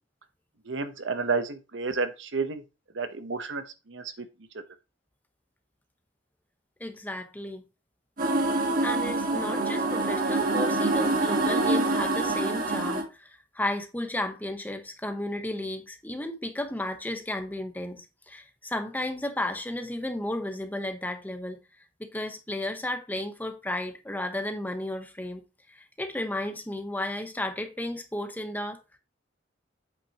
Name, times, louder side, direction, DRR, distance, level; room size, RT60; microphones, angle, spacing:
voice 1, 0.7-2.6 2.9-3.6 3.9-4.0, right 4 dB, 75° right, 1.0 m, -30 dB
voice 2, 6.8-7.6 8.8-21.6 22.0-25.4 25.7-28.8, left 1 dB, 10° left, 0.9 m, -33 dB
sound 1, 8.2-13.0, right 2 dB, 50° right, 1.5 m, -26 dB
8.4 x 6.0 x 2.9 m
head